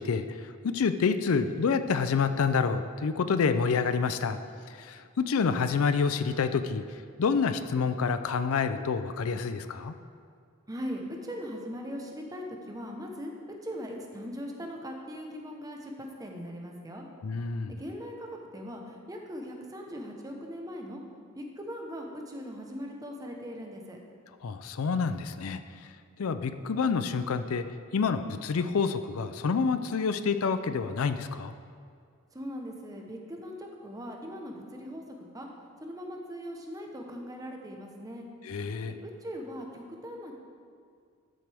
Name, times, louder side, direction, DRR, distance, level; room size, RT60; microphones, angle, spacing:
voice 1, 0.0-4.4 4.8-6.8 7.2-9.9 17.2-17.7 24.4-25.6 26.2-27.6 27.9-31.5 38.4-38.9, left 5 dB, 75° left, 10 dB, 0.5 m, -28 dB
voice 2, 10.7-13.3 13.6-17.1 17.7-21.0 21.4-24.0 32.3-35.5 35.8-38.3 39.0-40.3, equal, 15° right, 1 dB, 1.0 m, -40 dB
13.0 x 7.7 x 3.5 m, 2.2 s
head